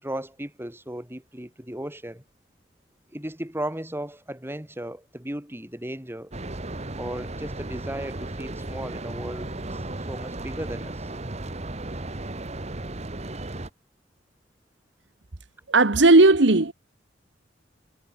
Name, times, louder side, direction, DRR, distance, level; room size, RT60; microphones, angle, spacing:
voice 1, 0.0-2.2 3.1-6.3 7.0-9.8 10.1-11.1, right 1 dB, 15° right, 4.2 m, -35 dB
sound 1, 6.3-13.7, right 2 dB, 35° right, 1.6 m, -35 dB
voice 2, 15.7-16.7, right 2 dB, 70° right, 1.5 m, -16 dB
head